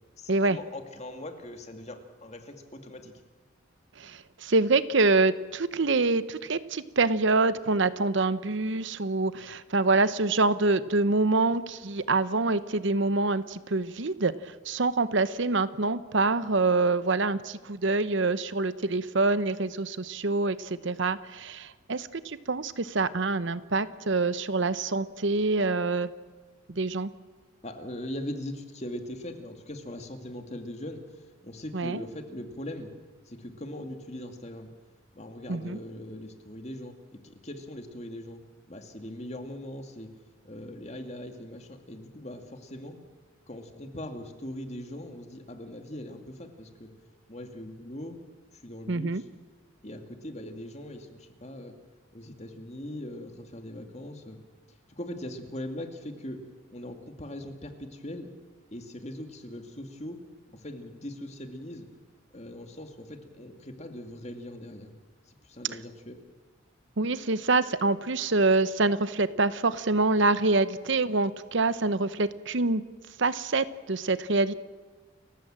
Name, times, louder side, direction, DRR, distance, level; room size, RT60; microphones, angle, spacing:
voice 1, 0.2-3.1 27.6-31.0 31.4-32.9 33.3-34.7 35.2-37.0 37.2-38.4 38.7-40.1 40.4-43.0 43.5-46.9 47.3-48.2 48.5-49.2 49.8-51.7 52.1-54.4 54.9-56.4 56.7-58.3 58.7-60.2 60.5-61.9 62.3-64.9 65.3-66.2, left 1 dB, 30° left, 6 dB, 2.3 m, -40 dB
voice 2, 4.0-26.1 26.7-27.1 31.7-32.0 35.5-35.8 48.9-49.2 67.0-72.8 73.2-74.5, right 3 dB, 60° right, 14 dB, 0.9 m, -26 dB
29.5 x 15.5 x 7.6 m, 1.4 s
head